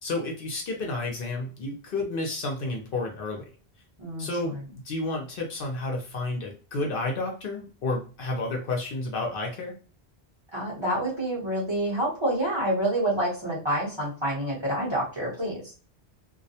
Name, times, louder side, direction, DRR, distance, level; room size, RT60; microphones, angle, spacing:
voice 1, 0.0-3.4 4.2-9.7, left 2 dB, 60° left, 1 dB, 0.8 m, -31 dB
voice 2, 4.0-4.6 10.5-15.6, right 1 dB, 30° right, -6 dB, 0.9 m, -28 dB
2.3 x 2.1 x 2.7 m, 0.38 s
omnidirectional pair, 1.1 m